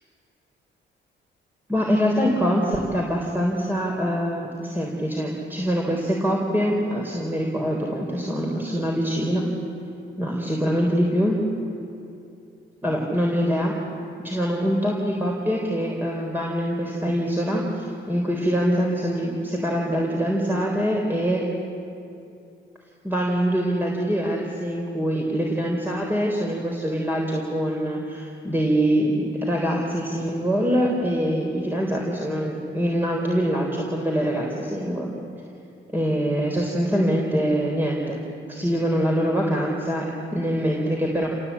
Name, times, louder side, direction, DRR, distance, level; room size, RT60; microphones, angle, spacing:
voice 1, 1.7-9.4 10.2-11.4 12.8-13.7 14.2-21.4 23.0-35.1 35.9-40.1 40.3-41.3, equal, 10° right, -2 dB, 3.9 m, -24 dB
29.0 x 17.5 x 8.5 m, 2.6 s
cardioid pair, 90°, 20 cm